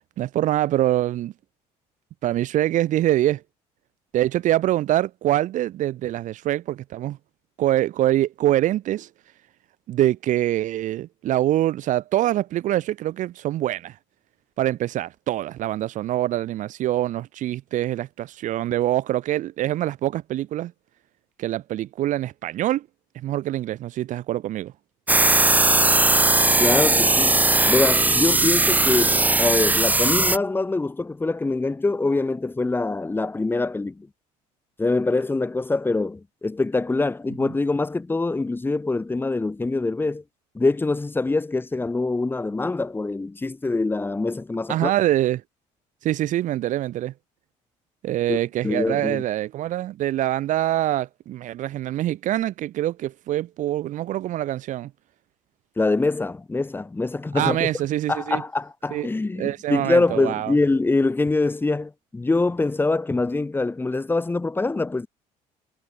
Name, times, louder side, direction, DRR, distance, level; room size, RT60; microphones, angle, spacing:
voice 1, 0.2-1.3 2.2-3.4 4.1-7.2 7.6-9.1 9.9-14.0 14.6-20.7 21.4-22.9 23.2-24.7 44.7-45.4 46.0-47.1 48.0-54.9 57.3-58.4 58.9-59.1 59.4-60.5, right 13 dB, 60° right, 1.3 m, -24 dB
sound 1, 25.1-30.4, right 2 dB, 10° right, 1.3 m, -18 dB
voice 2, 26.6-34.1 34.8-40.2 40.5-44.9 48.3-48.4 48.6-49.2 55.8-57.7 58.1-65.1, left 3 dB, 15° left, 1.3 m, -24 dB
supercardioid pair, 85°, 15 cm